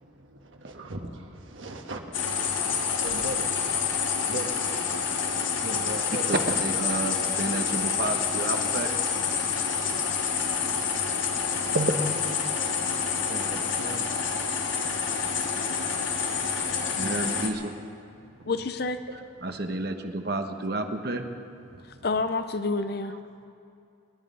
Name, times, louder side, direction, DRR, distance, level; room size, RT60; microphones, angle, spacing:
voice 1, 0.0-3.7 4.2-4.7 5.3-6.3 12.1-12.2 13.3-14.3 16.3-17.5 18.1-18.5 19.2-19.9 20.4-21.0 21.2-21.3 21.6-22.1 22.9-23.2, right 2 dB, 75° right, 3 dB, 1.6 m, -42 dB
sound 1, 2.1-17.5, left 6 dB, 75° left, 1.4 m, -28 dB
voice 2, 6.3-8.9 11.7-11.9 17.0-17.7 19.4-21.2, right 2 dB, 50° right, 6 dB, 1.1 m, -30 dB
voice 3, 18.5-19.0 22.0-23.2, left 3 dB, 50° left, 10 dB, 0.6 m, -28 dB
26.5 x 9.7 x 5.6 m, 2.5 s
head